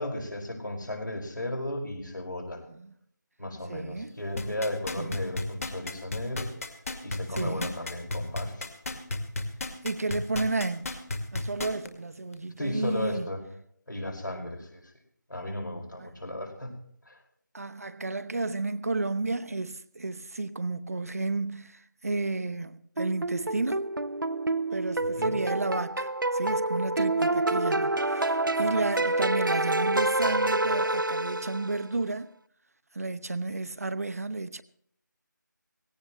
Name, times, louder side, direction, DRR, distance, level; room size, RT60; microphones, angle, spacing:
voice 1, 0.0-2.6 3.4-6.5 7.0-8.7 12.6-13.4 13.9-14.9 15.3-16.8 17.0-17.2 25.0-25.3, left 1 dB, 70° left, 5.2 m, -35 dB
voice 2, 3.7-4.1 5.0-5.2 7.3-7.7 9.6-11.0 11.3-13.3 16.0-16.1 17.5-23.9 24.7-32.3 32.9-34.6, right 3 dB, 50° right, 0.8 m, -32 dB
sound 1, 4.4-11.9 12.3-12.4, left 2 dB, 45° left, 2.3 m, -33 dB
sound 2, 23.0-31.9, right 2 dB, 80° right, 0.7 m, -27 dB
19.5 x 17.0 x 3.1 m
figure-of-eight pair, 160°, 11 cm